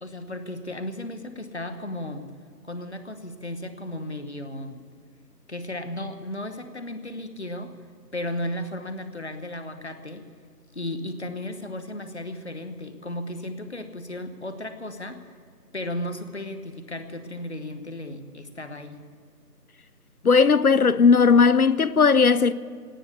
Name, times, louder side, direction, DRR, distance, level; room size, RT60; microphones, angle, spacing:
voice 1, 0.0-2.3 2.6-4.8 5.5-7.7 8.1-10.2 10.7-15.3 15.7-19.0, left 1 dB, 40° left, 1.2 m, -35 dB
voice 2, 20.2-22.5, left 5 dB, 60° left, 0.7 m, -17 dB
18.0 x 9.2 x 8.2 m
figure-of-eight pair, 170°, 49 cm